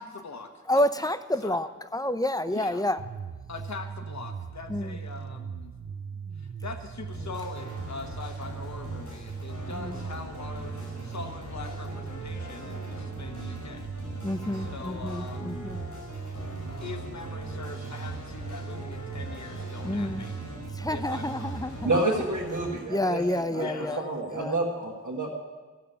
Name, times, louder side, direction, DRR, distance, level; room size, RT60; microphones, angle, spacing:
voice 1, 0.0-1.1 1.4-1.6 2.5-2.8 3.5-5.7 6.4-10.7 11.0-13.9 14.5-15.8 16.8-20.3 20.9-21.5 21.9-22.2 23.5-24.0, left 4 dB, 70° left, 5 dB, 1.1 m, -42 dB
voice 2, 0.7-3.0 4.7-5.0 9.7-10.1 14.2-15.8 19.8-20.2 20.7-21.9 22.2-22.3 22.9-24.0 24.3-24.6, left 1 dB, 15° left, 12 dB, 0.5 m, -29 dB
sound 1, 3.0-22.0, right 6 dB, 45° right, 0.7 m, -39 dB
sound 2, 7.1-22.8, left 1 dB, 90° left, 4.7 m, -42 dB
voice 3, 21.8-23.7 24.0-25.3, right 2 dB, 85° right, -4 dB, 1.4 m, -29 dB
14.5 x 6.8 x 8.7 m, 1.3 s
wide cardioid pair, 70°, 29 cm